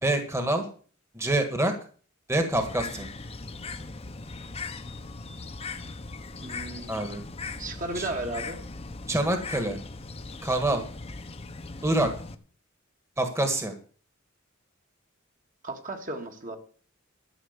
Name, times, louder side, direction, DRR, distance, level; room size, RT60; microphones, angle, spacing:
voice 1, 0.0-0.6 1.1-1.7 2.3-3.1 6.9-7.2 7.9-8.1 9.1-9.8 10.4-10.8 11.8-12.1 13.2-13.7, right 1 dB, 15° right, 6 dB, 1.5 m, -26 dB
Bird, 2.6-12.4, left 3 dB, 30° left, 0.9 m, -39 dB
voice 2, 6.4-7.1 7.5-8.6 15.6-16.6, right 2 dB, 40° right, 3 dB, 1.8 m, -35 dB
13.0 x 6.3 x 8.0 m, 0.42 s
head